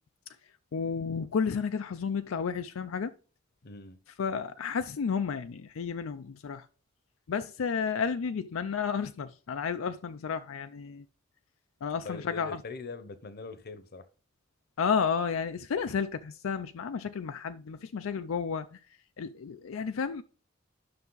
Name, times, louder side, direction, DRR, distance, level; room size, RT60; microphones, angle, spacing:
voice 1, 0.7-3.1 4.2-6.7 7.3-11.0 11.8-12.6 14.8-18.8 19.2-20.2, left 6 dB, 85° left, 0.4 m, -32 dB
voice 2, 3.6-4.0 12.0-14.1, left 4 dB, 50° left, 0.8 m, -42 dB
9.5 x 6.0 x 3.9 m
head